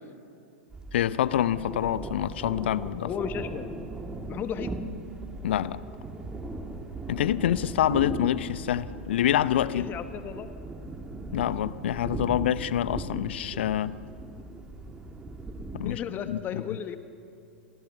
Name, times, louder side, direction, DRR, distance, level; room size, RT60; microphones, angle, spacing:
sound 1, 0.7-15.9, right 2 dB, 10° right, 2.1 m, -38 dB
voice 1, 0.9-3.1 5.4-5.8 7.1-9.9 11.3-14.0 15.7-16.6, left 11 dB, 60° left, 0.8 m, -26 dB
voice 2, 3.0-3.7 4.3-4.8 9.7-10.5 15.8-17.0, left 8 dB, 30° left, 1.2 m, -34 dB
30.0 x 23.5 x 6.9 m
figure-of-eight pair, 100°, 7 cm